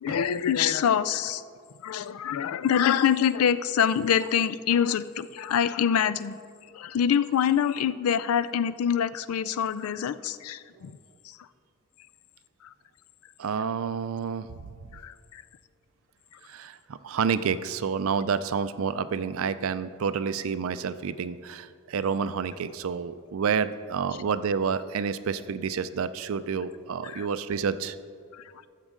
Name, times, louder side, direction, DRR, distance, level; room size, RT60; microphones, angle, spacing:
voice 1, 0.0-1.4 1.8-6.4 6.7-11.0 11.2-11.4 14.9-15.4 27.0-27.3 28.3-28.4, left 8 dB, 85° left, 16 dB, 0.3 m, -25 dB
voice 2, 13.4-14.5 16.5-16.8 17.0-27.9, right 6 dB, 75° right, 13 dB, 0.4 m, -29 dB
13.0 x 7.3 x 3.7 m, 2.2 s
head